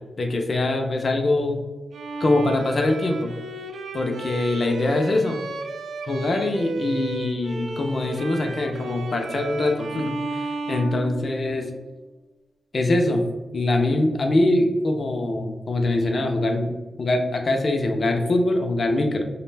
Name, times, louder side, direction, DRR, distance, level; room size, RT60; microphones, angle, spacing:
voice 1, 0.2-1.6 2.2-3.3 3.9-5.4 6.1-11.7 12.7-13.3 13.5-19.2, left 2 dB, 45° left, 3 dB, 0.3 m, -23 dB
Bowed string instrument, 1.9-11.7, right 3 dB, 85° right, 0.3 m, -33 dB
2.4 x 2.1 x 3.1 m, 1.2 s
wide cardioid pair, 140°, 0 cm